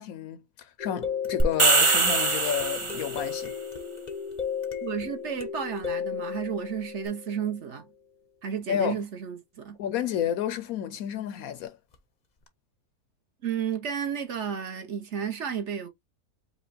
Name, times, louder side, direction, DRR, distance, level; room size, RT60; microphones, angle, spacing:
voice 1, 0.0-3.5 8.7-9.1 9.8-11.8, left 9 dB, 75° left, 1.0 m, -30 dB
sound 1, 0.8-7.7 11.9-12.0 12.5-12.6, left 7 dB, 40° left, 0.6 m, -35 dB
sound 2, 1.4-3.3, right 3 dB, 30° right, 0.6 m, -23 dB
voice 2, 4.8-7.9 8.4-9.8 13.4-15.9, right 7 dB, 55° right, 1.0 m, -32 dB
5.1 x 2.2 x 4.0 m
omnidirectional pair, 1.7 m